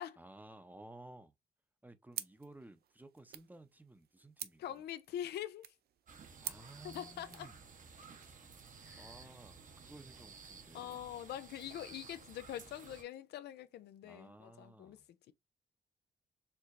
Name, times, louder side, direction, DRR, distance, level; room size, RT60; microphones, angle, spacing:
voice 1, 0.0-1.3 1.8-4.8 6.2-7.5 8.9-11.1 14.0-15.1, right 2 dB, 10° right, 0.6 m, -56 dB
sound 1, 2.1-7.5, right 10 dB, 70° right, 0.4 m, -49 dB
voice 2, 4.6-5.7 6.8-7.5 8.8-9.1 10.7-15.0 15.3-15.4, left 11 dB, 90° left, 0.4 m, -44 dB
sound 2, 6.1-13.0, right 5 dB, 50° right, 0.8 m, -55 dB
4.6 x 2.8 x 2.4 m
cardioid pair, 80°, 17 cm